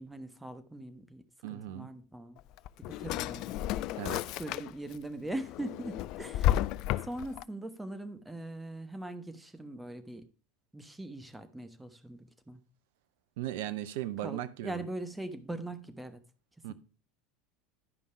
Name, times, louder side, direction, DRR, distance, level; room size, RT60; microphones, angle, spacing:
voice 1, 0.0-1.2 1.5-2.4 2.9-3.6 4.4-6.5 7.0-10.3 10.7-12.6 14.2-16.2 16.7-16.8, right 1 dB, 10° right, 1.2 m, -41 dB
voice 2, 1.4-1.9 4.0-4.2 13.4-14.8 16.6-16.7, right 13 dB, 65° right, 0.7 m, -37 dB
Drawer open or close, 2.4-5.0 5.4-7.4, left 13 dB, 55° left, 0.3 m, -32 dB
11.0 x 5.3 x 4.6 m
figure-of-eight pair, 75°, 0 cm